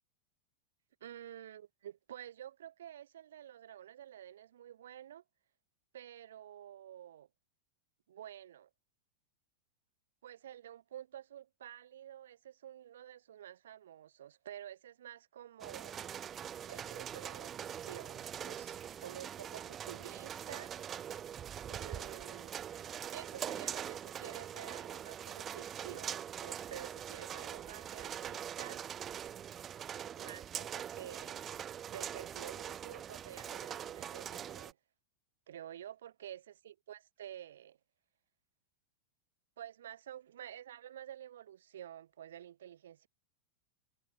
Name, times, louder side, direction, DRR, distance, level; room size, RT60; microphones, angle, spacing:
voice 1, 1.0-5.2 5.9-7.3 8.1-8.7 10.2-16.1 16.7-20.7 21.7-22.6 23.1-28.8 30.2-31.5 31.9-34.8 35.5-37.8 39.6-43.1, right 11 dB, 70° right, 2.6 m, -50 dB
sound 1, 15.6-34.7, right 9 dB, 30° right, 2.0 m, -43 dB
figure-of-eight pair, 95°, 0 cm